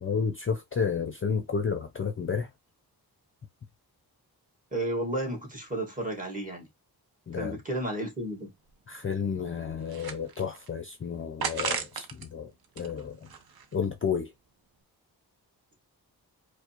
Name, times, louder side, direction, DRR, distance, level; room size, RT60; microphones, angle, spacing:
voice 1, 0.0-2.5 7.3-7.6 8.9-12.5 12.8-13.3 13.7-14.3, left 6 dB, 35° left, 0.5 m, -31 dB
voice 2, 4.7-6.7 7.3-8.5, right 1 dB, 20° right, 1.8 m, -32 dB
sound 1, 8.2-8.3 8.7-8.8 9.3-10.7 11.4-12.3 12.6-13.8, right 6 dB, 65° right, 0.8 m, -35 dB
4.8 x 2.1 x 2.9 m
wide cardioid pair, 100°, 39 cm